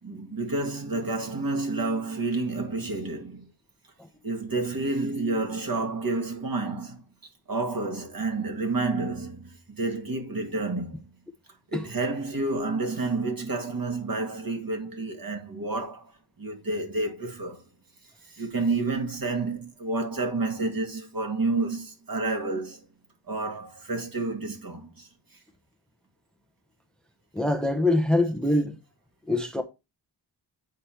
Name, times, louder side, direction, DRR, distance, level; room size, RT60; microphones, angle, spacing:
voice 1, 0.0-3.5 4.2-7.0 7.5-11.0 11.7-16.1 16.4-17.6 18.2-22.9 23.3-25.1, right 3 dB, 50° right, 2.0 m, -29 dB
voice 2, 27.3-28.8 29.3-29.6, left 1 dB, ahead, 0.8 m, -24 dB
8.2 x 4.9 x 4.4 m
wide cardioid pair, 90°, 43 cm